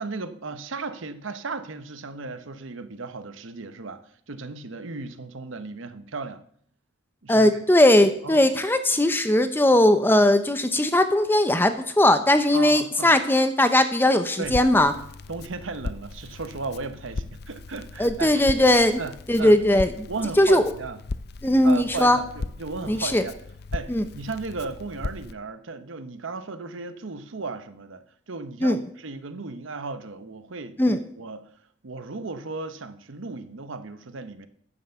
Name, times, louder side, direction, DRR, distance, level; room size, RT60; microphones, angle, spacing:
voice 1, 0.0-4.0 4.3-6.4 7.2-7.6 8.2-8.5 12.5-13.1 14.4-14.6 15.3-18.4 19.0-19.5 20.1-21.0 21.6-23.3 23.7-31.5 31.8-34.5, right 4 dB, 70° right, 0.8 m, -35 dB
voice 2, 7.3-14.9 18.0-19.0 19.3-20.1 20.4-20.6 21.4-22.2 22.9-23.2 23.9-24.0 28.6-28.8 30.8-31.0, left 1 dB, 10° left, 0.6 m, -19 dB
Crackle, 14.4-25.3, left 3 dB, 50° left, 0.5 m, -37 dB
9.9 x 6.9 x 6.9 m
head